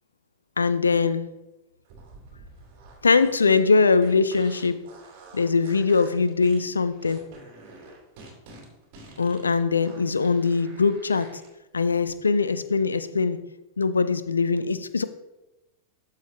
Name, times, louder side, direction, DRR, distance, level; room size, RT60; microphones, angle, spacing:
voice 1, 0.6-1.3 3.0-4.8 5.3-7.2 9.2-11.3 11.7-13.4 13.8-15.0, left 4 dB, 75° left, 14 dB, 0.4 m, -22 dB
sound 1, 1.8-11.5, right 3 dB, 45° right, 2.7 m, -48 dB
13.0 x 4.8 x 3.0 m, 1.0 s
figure-of-eight pair, 90°, 0 cm